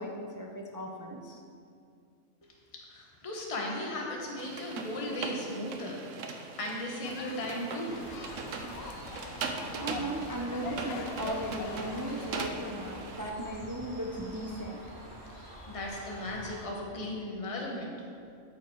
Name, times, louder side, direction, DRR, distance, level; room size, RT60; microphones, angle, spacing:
voice 1, 0.0-1.4 9.4-14.8, right 1 dB, 20° right, 0 dB, 0.5 m, -37 dB
voice 2, 2.7-8.0 15.3-17.9, left 1 dB, 25° left, -1 dB, 1.2 m, -37 dB
sound 1, 4.4-13.3, right 4 dB, 70° right, 1.1 m, -40 dB
sound 2, 7.0-12.4, left 4 dB, 55° left, 0.8 m, -44 dB
Bird, 7.9-16.7, right 1 dB, 50° right, 2.0 m, -47 dB
13.0 x 5.4 x 4.7 m, 2.4 s
omnidirectional pair, 1.4 m